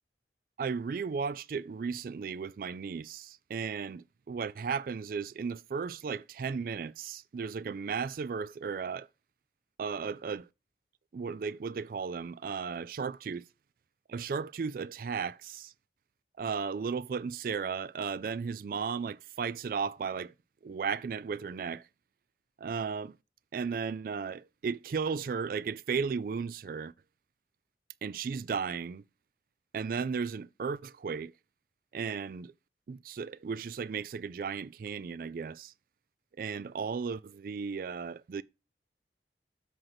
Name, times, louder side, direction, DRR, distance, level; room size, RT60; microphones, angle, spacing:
voice 1, 0.6-9.1 9.8-10.5 11.1-13.4 14.1-15.7 16.4-20.3 20.6-21.9 22.6-23.2 23.5-26.9 28.0-29.0 29.7-31.3 31.9-32.5 32.9-35.7 36.4-38.4, right 5 dB, 50° right, 0.3 m, -35 dB
7.8 x 4.5 x 5.7 m
head